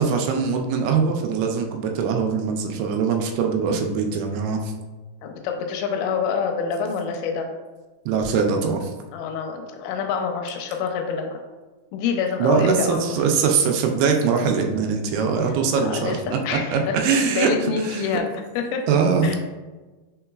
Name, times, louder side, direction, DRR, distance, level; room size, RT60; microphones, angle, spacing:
voice 1, 0.0-4.7 8.1-8.9 12.4-17.5 17.8-18.0 18.9-19.3, right 5 dB, 85° right, 3 dB, 2.5 m, -22 dB
voice 2, 5.2-7.5 9.1-11.4 11.9-13.2 15.5-15.6 15.8-17.0 17.3-18.3 18.6-18.8 19.2-19.4, left 6 dB, 85° left, 4 dB, 2.4 m, -27 dB
5.6 x 3.8 x 2.3 m, 1.2 s
omnidirectional pair, 4.6 m